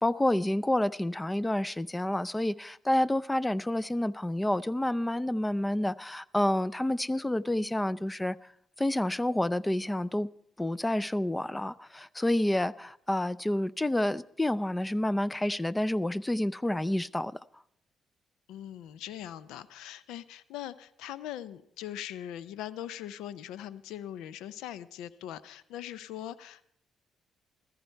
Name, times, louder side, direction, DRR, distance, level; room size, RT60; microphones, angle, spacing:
voice 1, 0.0-8.4 8.8-10.3 10.6-17.4, left 1 dB, 15° left, 0.5 m, -29 dB
voice 2, 18.5-26.7, left 11 dB, 90° left, 0.5 m, -41 dB
15.0 x 14.5 x 4.5 m
cardioid pair, 75°, 0 cm